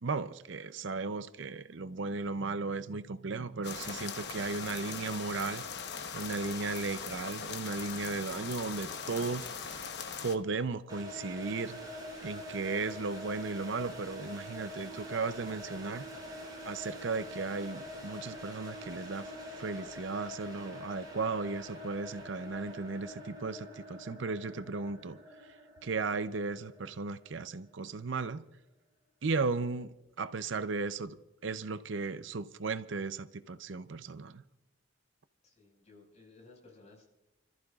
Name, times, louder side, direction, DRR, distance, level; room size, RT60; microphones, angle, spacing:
voice 1, 0.0-5.6 6.1-9.7 10.2-11.8 12.2-16.1 16.7-25.2 25.8-28.4 29.2-31.2 31.4-34.4, right 4 dB, 65° right, 0.6 m, -36 dB
sound 1, 3.6-10.4, left 6 dB, 55° left, 1.0 m, -40 dB
sound 2, 10.9-27.7, left 1 dB, 20° right, 5.3 m, -45 dB
voice 2, 35.4-37.1, left 3 dB, 35° left, 5.2 m, -57 dB
30.0 x 14.5 x 2.4 m
head